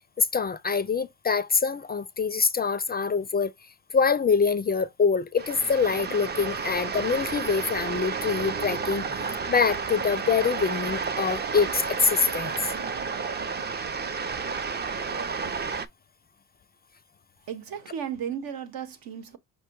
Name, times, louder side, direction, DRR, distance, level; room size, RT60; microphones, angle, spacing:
voice 1, 0.2-3.5 3.9-9.0 9.5-12.7, left 5 dB, 25° left, 0.4 m, -25 dB
sound 1, 5.4-15.9, right 5 dB, 30° right, 0.5 m, -31 dB
voice 2, 17.5-19.4, right 8 dB, 70° right, 1.0 m, -34 dB
5.4 x 2.1 x 4.5 m
cardioid pair, 90°, 37 cm